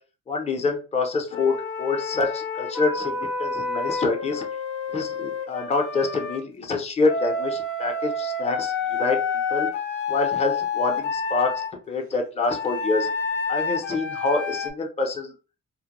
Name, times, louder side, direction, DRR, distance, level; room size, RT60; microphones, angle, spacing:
voice 1, 0.3-4.5 4.9-9.7 10.1-13.1 13.5-15.3, left 3 dB, 20° left, 2 dB, 0.5 m, -26 dB
Wind instrument woodwind instrument, 1.3-6.4 7.0-11.7 12.5-14.7, left 4 dB, 75° left, 0.6 m, -29 dB
2.1 x 2.0 x 2.8 m, 0.35 s
cardioid pair, 90°, 30 cm